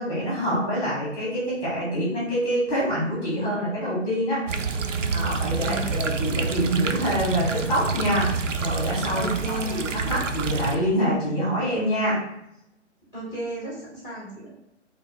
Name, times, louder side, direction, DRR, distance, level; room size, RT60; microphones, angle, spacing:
voice 1, 0.0-4.4 5.1-12.2, equal, 15° left, -6 dB, 1.1 m, -26 dB
voice 2, 4.5-6.0 9.1-9.9 13.1-14.5, right 1 dB, 10° right, -6 dB, 0.9 m, -35 dB
sound 1, 4.5-10.7, right 4 dB, 85° right, 0.5 m, -28 dB
3.4 x 2.7 x 3.6 m, 0.83 s
figure-of-eight pair, 140°, 36 cm